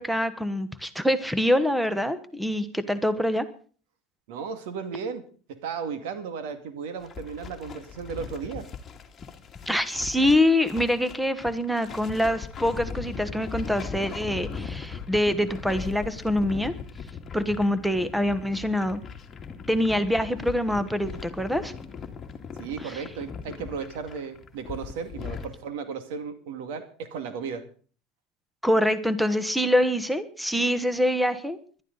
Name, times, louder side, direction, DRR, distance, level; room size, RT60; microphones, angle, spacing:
voice 1, 0.0-3.5 9.7-16.7 17.3-19.0 19.7-21.7 22.8-23.0 28.6-31.8, left 1 dB, ahead, 13 dB, 1.1 m, -25 dB
voice 2, 4.3-8.7 22.6-27.7, right 6 dB, 80° right, 9 dB, 2.1 m, -35 dB
sound 1, 7.0-25.5, left 6 dB, 25° left, 2.1 m, -39 dB
21.0 x 12.0 x 4.0 m, 0.41 s
supercardioid pair, 120°, 0 cm